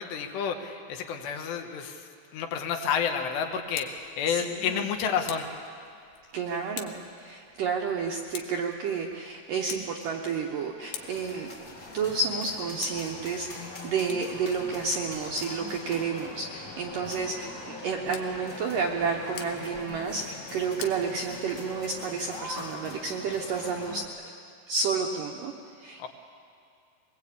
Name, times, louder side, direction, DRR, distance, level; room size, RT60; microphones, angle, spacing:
voice 1, 0.0-2.1 2.3-5.5 26.0-26.1, left 7 dB, 75° left, 4 dB, 3.4 m, -30 dB
Tick, 3.4-21.9, left 9 dB, 90° left, 3.5 m, -48 dB
voice 2, 4.3-4.8 6.3-24.0 24.7-25.5 25.8-26.1, right 5 dB, 75° right, 1 dB, 2.0 m, -31 dB
sound 1, 11.0-24.0, left 2 dB, 40° left, 1.2 m, -42 dB
22.0 x 20.5 x 8.5 m, 2.3 s
omnidirectional pair, 5.2 m